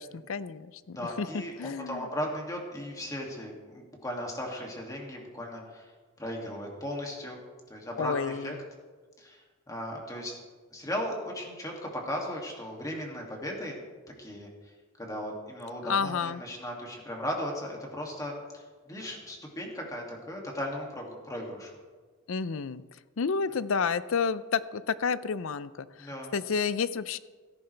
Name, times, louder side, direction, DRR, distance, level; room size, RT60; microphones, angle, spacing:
voice 1, 0.0-2.1 8.0-8.5 15.8-16.4 22.3-22.8 23.2-27.2, left 5 dB, 70° left, 16 dB, 0.5 m, -30 dB
voice 2, 0.9-5.9 6.2-7.4 7.7-8.6 9.2-10.4 10.7-13.8 14.2-14.5 15.0-21.7 26.0-26.3, equal, 15° left, -1 dB, 2.4 m, -37 dB
16.5 x 14.0 x 3.4 m, 1.4 s
head